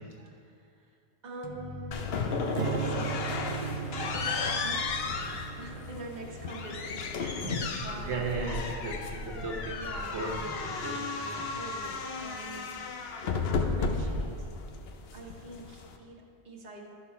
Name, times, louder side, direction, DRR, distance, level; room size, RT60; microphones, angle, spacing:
voice 1, 0.3-1.0 1.2-2.1 2.4-8.4 9.7-10.2 11.5-12.8 13.2-14.5 15.1-16.9, right 2 dB, 40° right, -2 dB, 1.2 m, -44 dB
sound 1, 1.4-7.0, left 5 dB, 40° left, 0.3 m, -46 dB
sound 2, 1.9-16.0, left 4 dB, 65° left, 0.9 m, -34 dB
Strum, 2.5-8.9, right 11 dB, 60° right, 0.6 m, -39 dB
voice 2, 7.2-9.0 9.2-9.8 10.1-11.5, right 3 dB, 85° right, 0 dB, 1.4 m, -36 dB
12.0 x 4.5 x 5.7 m, 2.4 s
omnidirectional pair, 1.1 m